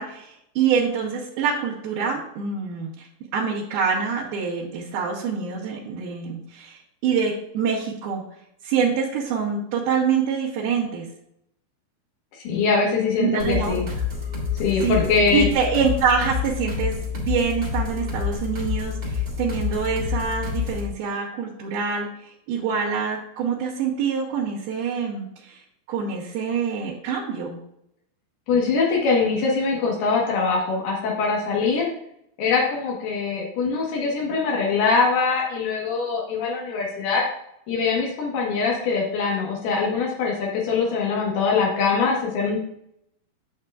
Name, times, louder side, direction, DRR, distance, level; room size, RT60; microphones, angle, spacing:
voice 1, 0.0-3.1 3.3-6.8 7.0-8.2 8.6-11.1 13.2-13.8 14.8-15.0 15.3-22.1 22.5-25.6 25.9-27.6, right 6 dB, 75° right, -7 dB, 3.1 m, -25 dB
voice 2, 12.3-13.9 14.6-15.5 28.5-31.9 32.4-37.2 37.7-42.6, left 4 dB, 80° left, -3 dB, 3.3 m, -23 dB
sound 1, 13.4-20.9, left 6 dB, 35° right, 1.8 m, -28 dB
8.8 x 8.1 x 2.4 m, 0.75 s
omnidirectional pair, 4.5 m